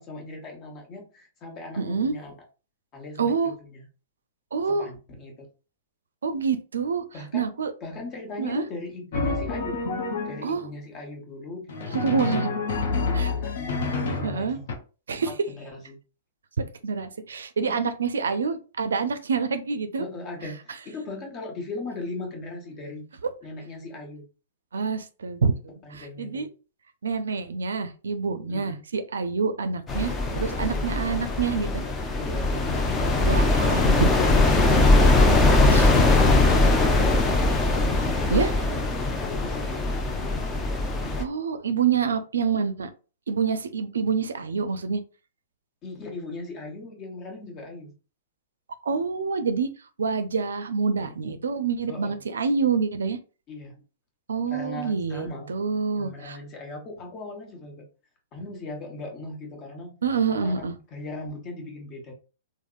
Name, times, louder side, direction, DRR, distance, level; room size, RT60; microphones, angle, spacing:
voice 1, 0.0-2.3 2.9-3.9 4.7-5.5 7.1-9.8 10.2-12.3 12.9-14.6 15.1-16.0 17.6-17.8 20.0-23.0 23.4-24.2 25.8-26.5 28.5-28.8 30.6-30.9 32.2-32.8 33.4-33.6 35.0-37.5 38.0-38.5 39.2-40.4 45.8-47.9 51.9-52.2 53.5-53.8 54.5-55.5 55.9-57.9 58.3-59.9 60.3-60.5 60.9-62.1, left 2 dB, 35° left, 1 dB, 1.1 m, -38 dB
voice 2, 1.8-2.1 3.2-3.5 4.5-4.9 6.2-7.0 7.3-7.7 8.4-8.6 10.4-10.6 11.9-12.5 13.1-13.3 14.2-14.6 15.1-15.3 16.8-20.0 24.7-26.5 27.0-31.9 33.2-34.4 35.7-35.8 38.3-38.5 41.2-42.9 43.3-45.0 48.8-49.7 50.0-53.2 54.3-56.4 60.0-60.7, right 5 dB, 80° right, 10 dB, 0.4 m, -27 dB
Drum, 9.1-10.6 11.7-14.8, left 3 dB, 60° left, 0.7 m, -28 dB
sound 1, 29.9-41.2, left 2 dB, 20° left, 0.5 m, -21 dB
3.4 x 2.0 x 2.4 m, 0.34 s
hypercardioid pair, 115°, 0 cm